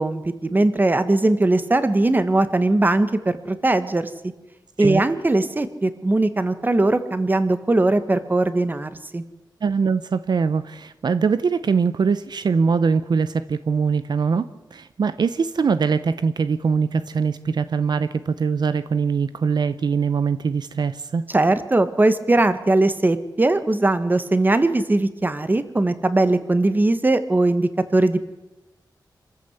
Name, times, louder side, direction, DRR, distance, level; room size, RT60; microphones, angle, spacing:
voice 1, 0.0-4.1 4.8-9.2 21.3-28.2, right 2 dB, 25° right, 11 dB, 1.4 m, -20 dB
voice 2, 9.6-14.5 14.7-21.3, right 5 dB, 65° right, 13 dB, 0.7 m, -22 dB
26.0 x 14.0 x 8.1 m, 1.0 s
wide cardioid pair, 130°, 8 cm